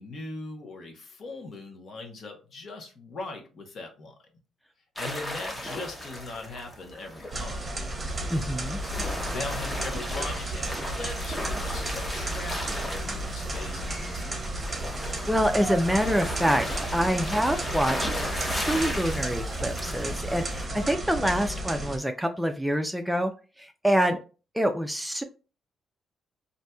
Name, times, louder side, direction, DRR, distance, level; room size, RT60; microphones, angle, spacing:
voice 1, 0.0-4.1 5.0-7.6 9.3-14.4 20.8-20.9, left 3 dB, 55° left, 3 dB, 0.9 m, -40 dB
sound 1, 5.0-20.6, left 1 dB, 15° left, 0.8 m, -36 dB
sound 2, 7.3-22.0, right 1 dB, 25° right, 0.8 m, -33 dB
voice 2, 8.3-8.8 14.9-23.3 23.6-24.2 24.5-25.2, equal, 5° right, 6 dB, 0.4 m, -26 dB
4.0 x 2.6 x 2.2 m, 0.34 s
cardioid pair, 90°, 0 cm